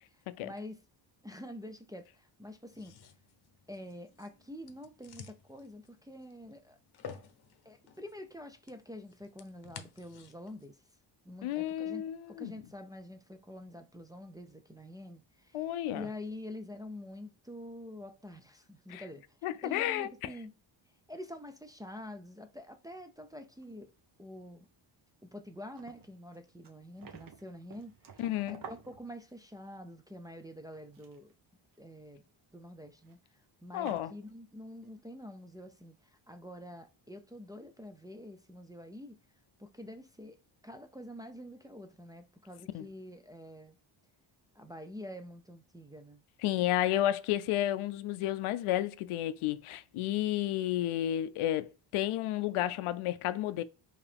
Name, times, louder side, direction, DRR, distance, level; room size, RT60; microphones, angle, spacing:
voice 1, 0.1-0.8 1.2-3.0 3.7-6.8 7.6-10.8 11.2-20.5 21.1-23.9 24.2-24.7 25.2-31.3 31.8-32.2 32.5-39.2 39.6-40.4 40.6-43.8 44.5-46.2, left 1 dB, 10° right, 0.4 m, -47 dB
sound 1, 2.7-10.7, left 7 dB, 50° left, 0.8 m, -53 dB
voice 2, 11.4-12.5 15.5-16.1 18.9-19.0 19.4-20.1 28.2-28.6 33.7-34.1 42.7-42.9 46.4-53.6, left 13 dB, 85° left, 0.6 m, -32 dB
sound 2, 23.6-24.3 24.6-24.7 25.1-25.2 25.4-29.7 30.6-31.3 31.7-32.0 33.0-33.1 33.7-34.4 34.8-34.9, right 6 dB, 45° right, 0.9 m, -52 dB
4.7 x 2.9 x 3.4 m
cardioid pair, 105°, 49 cm